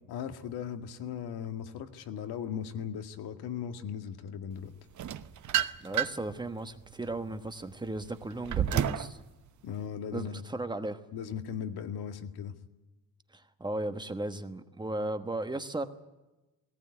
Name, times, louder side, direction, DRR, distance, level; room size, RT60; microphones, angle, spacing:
voice 1, 0.1-4.7 9.6-10.4 11.1-12.5, left 8 dB, 85° left, 7 dB, 2.0 m, -38 dB
sound 1, 5.0-6.3 6.9-9.1, right 10 dB, 50° right, 1.0 m, -31 dB
voice 2, 5.8-9.2 10.1-11.0 13.3-15.8, right 2 dB, 10° right, 9 dB, 1.2 m, -36 dB
18.5 x 18.0 x 9.7 m, 1.1 s
cardioid pair, 135°, 37 cm